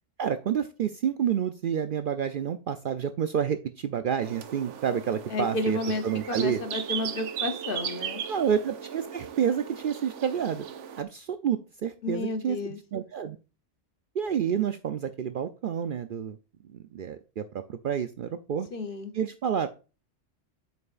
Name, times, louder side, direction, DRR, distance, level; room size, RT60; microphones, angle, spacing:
voice 1, 0.2-5.8 6.0-6.6 8.3-10.6 11.0-12.6 12.9-13.4 14.1-16.4 16.7-18.7 19.1-19.7, right 8 dB, 60° right, 10 dB, 0.6 m, -29 dB
sound 1, 4.2-11.0, right 9 dB, 80° right, 1.0 m, -37 dB
voice 2, 5.3-8.2 12.0-12.8 18.7-19.1, left 3 dB, 50° left, 8 dB, 1.0 m, -32 dB
7.7 x 5.5 x 2.4 m, 0.31 s
omnidirectional pair, 1.2 m